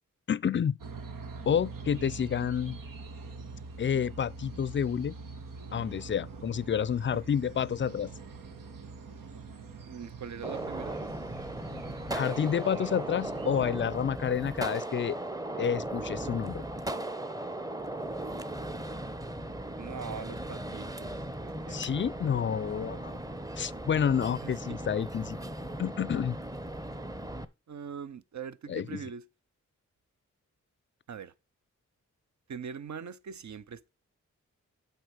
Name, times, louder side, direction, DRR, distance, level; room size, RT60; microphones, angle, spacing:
voice 1, 0.3-0.8 1.5-2.8 3.8-5.2 5.7-8.1 12.1-15.2 15.6-16.6 21.7-23.1 23.6-25.4 25.8-26.4 28.7-28.8, left 8 dB, 35° left, 0.4 m, -29 dB
sound 1, 0.8-13.6, right 4 dB, 85° right, 1.2 m, -44 dB
voice 2, 9.8-11.0 19.8-23.2 24.4-24.8 27.7-29.3 31.1-31.3 32.5-33.9, right 6 dB, 60° right, 0.7 m, -43 dB
Gunshot gunfire, 10.4-27.4, right 1 dB, 10° right, 0.8 m, -37 dB
8.0 x 4.5 x 6.4 m
cardioid pair, 50°, 32 cm